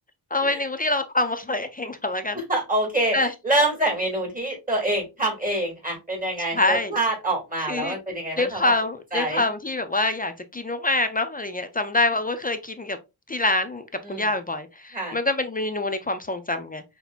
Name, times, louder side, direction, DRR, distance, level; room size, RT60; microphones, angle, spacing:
voice 1, 0.3-2.4 3.1-3.3 6.5-6.9 7.7-8.0 8.4-13.0 13.3-16.8, left 2 dB, 20° left, 0.4 m, -25 dB
voice 2, 2.5-8.7 9.1-9.4 14.0-14.2 14.9-15.2, right 1 dB, 20° right, 2.2 m, -26 dB
6.0 x 2.7 x 2.4 m
wide cardioid pair, 135°, 42 cm